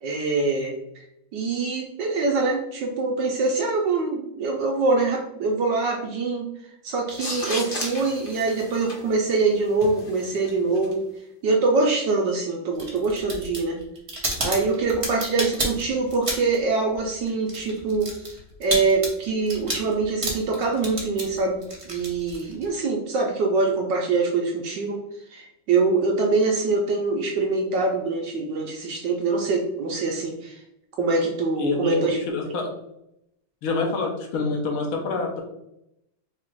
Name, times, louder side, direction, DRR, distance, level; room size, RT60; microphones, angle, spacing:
voice 1, 0.0-1.0 1.3-6.5 6.8-11.0 11.4-13.8 14.4-25.0 25.3-30.6 31.0-32.2, right 3 dB, 70° right, 0 dB, 1.1 m, -24 dB
sound 1, 7.1-10.9, left 1 dB, 50° left, 0.6 m, -35 dB
sound 2, 12.7-16.7 16.9-22.8, right 1 dB, 35° right, 0.5 m, -31 dB
voice 2, 31.6-32.8 33.6-35.4, left 3 dB, 70° left, 1 dB, 1.6 m, -27 dB
4.1 x 2.4 x 4.4 m, 0.80 s
omnidirectional pair, 2.4 m